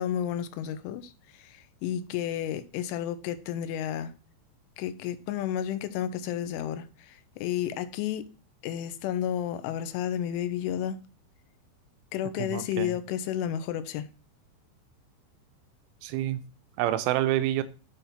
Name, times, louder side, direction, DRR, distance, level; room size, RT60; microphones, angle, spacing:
voice 1, 0.0-4.1 4.8-8.3 8.6-11.1 12.1-14.1, left 10 dB, 85° left, 3.1 m, -32 dB
voice 2, 12.4-13.0 16.0-16.4 16.8-17.6, right 13 dB, 85° right, 3.1 m, -27 dB
8.5 x 3.5 x 5.7 m
omnidirectional pair, 5.5 m